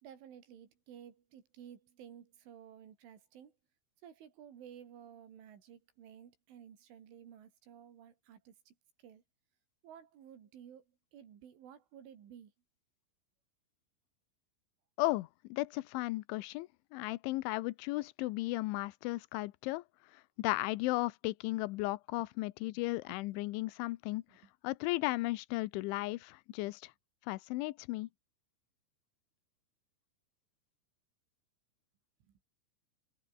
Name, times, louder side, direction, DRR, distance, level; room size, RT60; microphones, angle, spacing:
voice 1, 0.0-3.5 4.0-9.2 9.8-12.5 22.8-23.7 24.3-24.4 32.2-32.4, right 9 dB, 85° right, 5.8 m, -55 dB
voice 2, 15.0-19.8 20.4-24.2 24.6-26.9 27.3-28.1, left 20 dB, 80° left, 3.2 m, -35 dB
omnidirectional pair, 5.4 m